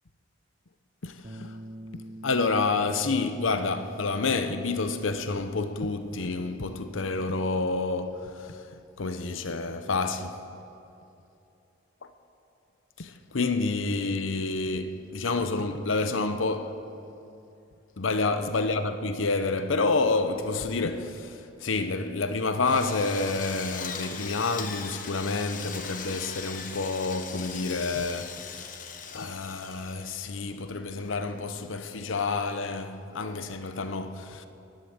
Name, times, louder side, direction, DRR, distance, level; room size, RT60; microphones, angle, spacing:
voice 1, 1.0-1.6 2.2-10.5 12.0-12.1 13.0-16.9 18.0-28.8 29.1-34.5, left 3 dB, 85° left, 0.8 m, -29 dB
Bass guitar, 1.2-7.5, right 2 dB, 40° right, 0.7 m, -46 dB
Drill, 22.6-30.5, left 6 dB, 40° left, 1.1 m, -39 dB
14.0 x 11.5 x 8.9 m
head